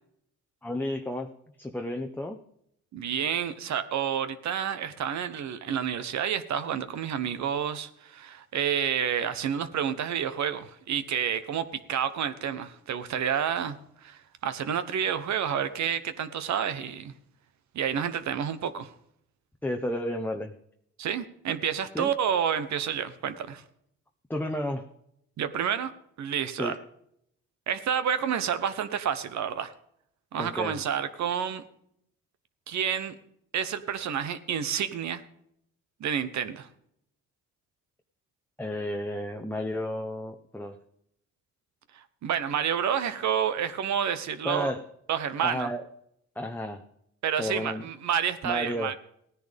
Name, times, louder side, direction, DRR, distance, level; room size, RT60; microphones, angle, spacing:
voice 1, 0.6-1.3 1.6-2.4 19.6-20.5 21.9-22.1 24.3-24.8 26.6-26.8 30.4-30.8 38.6-40.8 44.4-44.8 45.4-45.8 46.4-46.8 47.4-47.9 48.4-48.9, left 1 dB, 5° left, 4 dB, 0.9 m, -32 dB
voice 2, 2.9-17.1 17.7-18.9 21.0-23.6 25.4-25.9 26.2-26.8 27.7-29.7 30.3-31.6 32.7-33.1 33.5-35.2 36.0-36.7 41.9-44.7 45.1-45.7 47.2-48.9, right 8 dB, 65° right, 12 dB, 1.1 m, -29 dB
16.5 x 10.0 x 3.5 m, 0.71 s
cardioid pair, 90°, 30 cm